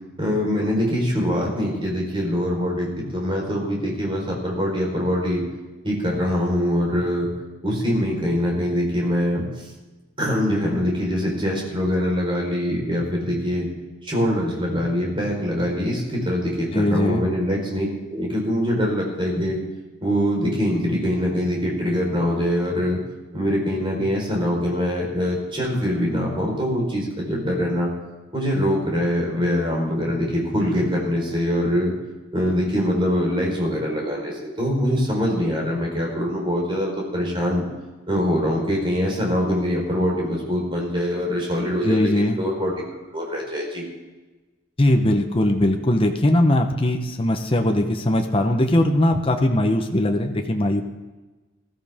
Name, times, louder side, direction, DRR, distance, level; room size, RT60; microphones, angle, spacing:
voice 1, 0.2-5.4 5.8-7.3 7.6-9.6 10.2-13.7 14.0-19.6 20.0-23.0 23.3-27.9 28.3-31.9 32.3-37.6 38.1-42.7 43.1-43.8, equal, 25° right, -2 dB, 4.3 m, -23 dB
voice 2, 16.7-17.3 41.8-42.4 44.8-50.8, left 1 dB, 25° left, 4 dB, 0.9 m, -20 dB
20.0 x 13.5 x 3.6 m, 1.2 s
head